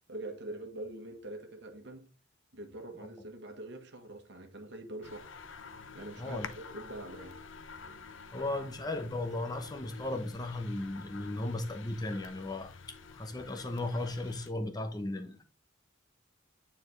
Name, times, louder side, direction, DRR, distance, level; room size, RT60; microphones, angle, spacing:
voice 1, 0.1-2.1 2.5-5.3 5.9-7.4, right 1 dB, 60° right, 1.4 m, -44 dB
sound 1, 5.0-14.5, left 5 dB, 65° left, 0.8 m, -49 dB
voice 2, 6.2-6.5 8.3-12.7 13.1-15.4, left 2 dB, 20° left, 0.8 m, -36 dB
9.4 x 4.3 x 3.2 m
head